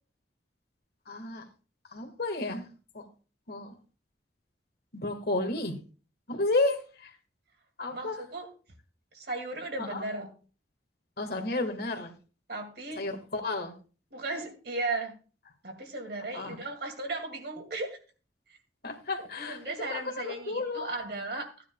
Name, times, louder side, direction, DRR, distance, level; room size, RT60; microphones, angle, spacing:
voice 1, 1.1-1.5 1.9-2.7 2.9-3.1 3.5-3.8 4.9-5.8 6.3-7.2 7.8-8.2 9.8-10.0 11.2-12.1 13.0-13.7 16.3-16.6 18.8-20.9, left 2 dB, 60° left, 1.8 m, -32 dB
voice 2, 7.9-8.5 9.1-10.3 12.5-13.1 14.1-15.1 15.6-18.0 19.2-21.5, right 2 dB, 60° right, 2.4 m, -36 dB
15.0 x 9.9 x 2.3 m
head